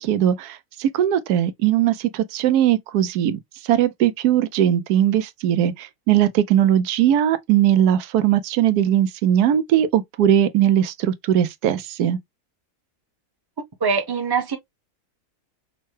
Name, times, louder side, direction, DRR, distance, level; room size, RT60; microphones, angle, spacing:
voice 1, 0.0-3.4 3.6-12.2, right 11 dB, 85° right, 1.2 m, -19 dB
voice 2, 13.8-14.6, right 5 dB, 20° right, 0.7 m, -22 dB
5.4 x 2.1 x 3.2 m
omnidirectional pair, 1.6 m